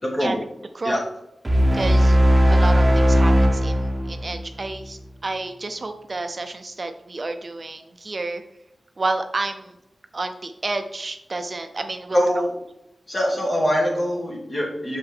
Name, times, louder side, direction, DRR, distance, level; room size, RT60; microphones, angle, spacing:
voice 1, 0.0-0.4 0.8-1.0 12.1-12.5 13.1-15.0, equal, 35° left, -2 dB, 2.7 m, -23 dB
sound 1, 1.4-4.8, equal, 20° right, 1.1 m, -17 dB
voice 2, 1.7-3.7 4.1-8.4 9.0-9.7 10.1-12.2, right 2 dB, 45° right, 7 dB, 0.7 m, -30 dB
6.7 x 5.6 x 3.6 m, 0.82 s
wide cardioid pair, 80°, 0 cm